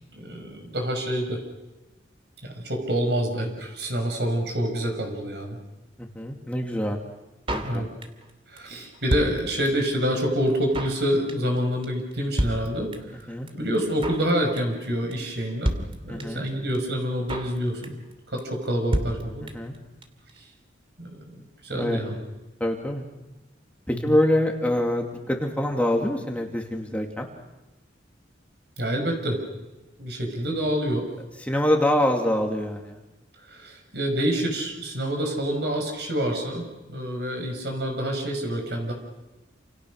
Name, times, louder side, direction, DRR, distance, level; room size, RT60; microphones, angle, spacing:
voice 1, 0.1-1.4 2.4-5.6 7.6-7.9 8.5-13.2 13.5-15.8 16.0-17.9 18.3-19.5 20.4-20.5 21.0-22.2 23.9-24.1 28.8-29.4 30.0-31.1 33.5-38.9, equal, 65° right, 4 dB, 6.0 m, -27 dB
voice 2, 6.0-7.0 7.5-7.8 13.1-13.5 16.1-16.5 19.5-19.7 21.7-22.0 22.6-23.0 23.9-27.3 31.4-33.0, left 1 dB, 10° left, 1 dB, 2.4 m, -25 dB
Drum kit, 7.5-8.3 8.6-8.7 8.8-9.9 10.2-10.3 10.5-11.0 11.3-11.6 11.8-11.9 12.1-12.2 12.4-13.2 13.5-13.6 13.7-14.3 14.6-14.8 15.1-15.2 15.4-15.5 15.6-16.5 16.7-16.8 17.0-17.6 17.8-18.1 18.4-18.5 18.7-18.8 18.9-19.8 20.0-20.1 20.3-20.4, equal, 30° right, 2.8 m, -29 dB
29.0 x 28.0 x 6.5 m, 1.1 s
head